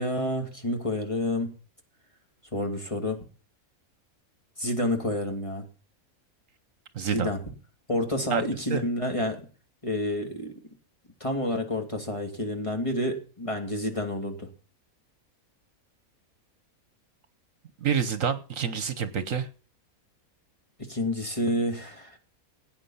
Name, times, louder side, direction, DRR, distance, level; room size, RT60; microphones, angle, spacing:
voice 1, 0.0-1.5 2.5-3.2 4.6-5.6 7.1-7.4 7.9-9.4 9.8-10.5 11.2-14.5 20.9-22.2, left 1 dB, 20° left, 3 dB, 2.7 m, -29 dB
voice 2, 6.9-7.3 8.3-8.4 8.7-8.8 17.8-19.5, right 7 dB, 65° right, 12 dB, 1.4 m, -27 dB
17.0 x 9.0 x 5.7 m, 0.38 s
omnidirectional pair, 1.5 m